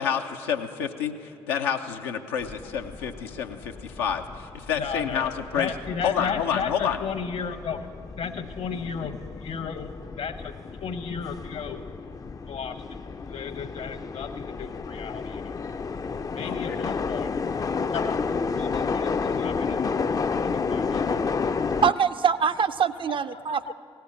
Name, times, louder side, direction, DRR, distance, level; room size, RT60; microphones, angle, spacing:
voice 1, 0.0-5.7 6.0-7.0 16.4-16.8, left 8 dB, 80° left, 4 dB, 0.5 m, -29 dB
sound 1, 2.4-21.9, left 5 dB, 30° left, 0.4 m, -31 dB
voice 2, 4.7-5.3 5.6-7.9 8.1-9.9 10.2-10.5 10.8-11.8 12.5-12.8 13.3-15.4 16.3-17.3 17.9-19.1 19.4-19.8 20.4-21.1 23.3-23.7, left 6 dB, 55° left, 9 dB, 0.9 m, -34 dB
voice 3, 21.6-23.7, right 7 dB, 40° right, 12 dB, 0.4 m, -24 dB
16.5 x 5.7 x 8.6 m, 2.6 s
hypercardioid pair, 40°, 13 cm